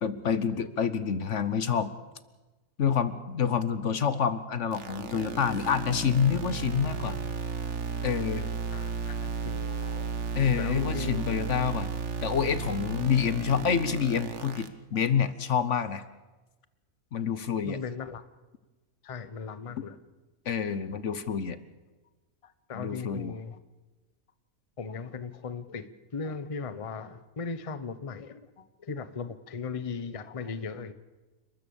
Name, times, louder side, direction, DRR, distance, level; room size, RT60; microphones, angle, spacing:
voice 1, 0.0-1.9 2.8-7.2 8.0-8.5 10.3-11.9 12.2-16.0 17.1-17.8 20.5-21.6 22.7-23.3, left 7 dB, 60° left, 14 dB, 1.2 m, -27 dB
sound 1, 4.7-14.7, right 5 dB, 55° right, 1.5 m, -34 dB
voice 2, 8.7-10.1 10.6-11.2 17.7-18.2 19.0-20.0 21.1-21.2 22.7-23.6 24.8-25.9 26.1-28.4 28.8-30.9, left 5 dB, 30° left, 12 dB, 0.9 m, -37 dB
29.5 x 13.5 x 7.0 m, 1.2 s
omnidirectional pair, 1.5 m